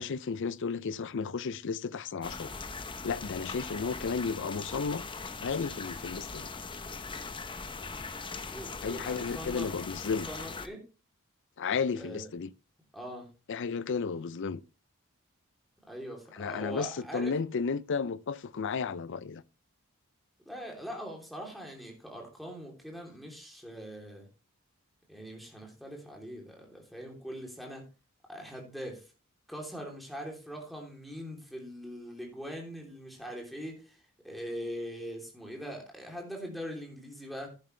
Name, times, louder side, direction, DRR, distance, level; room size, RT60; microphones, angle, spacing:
voice 1, 0.0-2.5 3.0-5.0 5.4-6.5 8.8-10.3 11.6-12.5 13.5-14.6 16.3-19.4, left 5 dB, 60° left, 0.5 m, -33 dB
sound 1, 2.2-10.7, left 4 dB, 25° left, 0.7 m, -40 dB
voice 2, 8.2-9.7 10.3-10.8 11.9-12.3 12.9-13.3 15.9-17.3 20.4-24.2 25.1-27.8 28.3-29.0 29.5-34.0 34.2-37.5, equal, ahead, 3.1 m, -42 dB
10.5 x 10.5 x 3.2 m
head